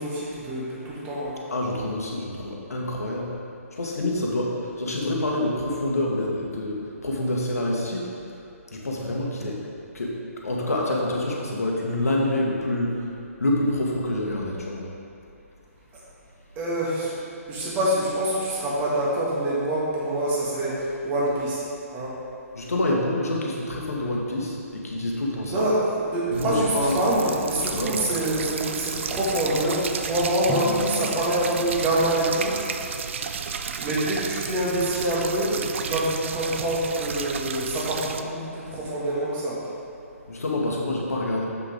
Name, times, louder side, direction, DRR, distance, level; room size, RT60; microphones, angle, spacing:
voice 1, 0.0-1.4 16.6-17.2 17.5-21.6 21.9-22.1 25.5-32.6 33.8-39.6, right 1 dB, 20° right, -6 dB, 1.7 m, -26 dB
voice 2, 1.5-3.3 3.7-8.1 8.7-9.7 9.9-13.1 13.4-14.9 22.5-25.7 26.3-27.1 27.7-28.0 40.3-41.5, left 1 dB, 75° left, -2 dB, 1.4 m, -27 dB
sound 1, 26.3-38.2, right 6 dB, 50° right, 0.4 m, -33 dB
Drum, 30.5-33.4, left 2 dB, 10° left, 0.9 m, -36 dB
7.4 x 6.3 x 3.6 m, 2.6 s
figure-of-eight pair, 135°, 8 cm